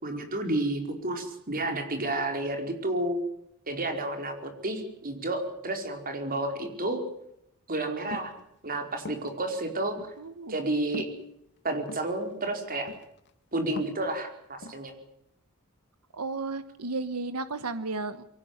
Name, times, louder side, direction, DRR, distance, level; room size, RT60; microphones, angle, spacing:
voice 1, 0.0-3.2 3.7-7.0 7.7-8.3 8.6-10.0 10.5-11.1 11.6-12.9 13.5-14.9, right 2 dB, 40° right, 5 dB, 4.8 m, -31 dB
sound 1, 8.1-8.4 9.1-9.3 10.0-10.1 10.9-11.1 11.9-12.1 12.9-13.3 13.6-14.1 14.6-14.9, left 2 dB, 50° left, 1.7 m, -40 dB
voice 2, 10.2-10.6 16.1-18.2, right 3 dB, 80° right, 11 dB, 1.3 m, -33 dB
23.5 x 17.5 x 9.7 m, 0.76 s
head